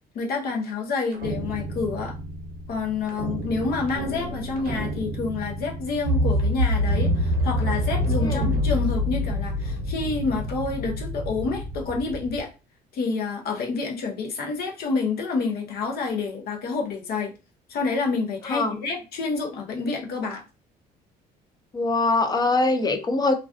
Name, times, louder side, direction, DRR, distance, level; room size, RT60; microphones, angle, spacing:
voice 1, 0.1-2.1 2.7-12.5 12.9-17.3 17.7-20.4, left 4 dB, 65° left, 0.8 m, -28 dB
sound 1, 1.1-12.4, equal, 60° right, 0.6 m, -27 dB
voice 2, 8.2-8.5 18.5-18.8 21.7-23.3, left 3 dB, 25° left, 0.4 m, -23 dB
2.4 x 2.3 x 2.3 m
cardioid pair, 110°, 17 cm